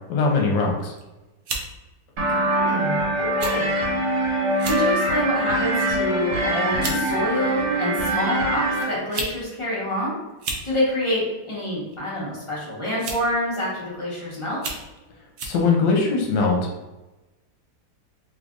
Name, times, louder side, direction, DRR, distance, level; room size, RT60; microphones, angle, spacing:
voice 1, 0.1-0.9 15.4-16.7, left 4 dB, 70° left, 0 dB, 1.3 m, -21 dB
sound 1, 0.8-1.0 1.5-1.7 2.5-2.7 3.4-3.6 3.9-4.0 4.5-4.8 5.4-5.6 6.4-6.5 6.8-7.0 8.1-8.2 8.9-9.4 9.6-9.7 10.3-10.7 11.9-12.2 13.0-13.3 13.9-14.0 14.5-14.9 15.4-15.6, right 3 dB, 85° right, 0.6 m, -31 dB
sound 2, 2.2-8.8, right 1 dB, 55° right, 1.7 m, -23 dB
voice 2, 2.3-3.7 4.6-10.2 10.6-14.6, left 1 dB, 25° left, -7 dB, 0.8 m, -27 dB
3.3 x 2.5 x 3.5 m, 1.1 s
omnidirectional pair, 2.0 m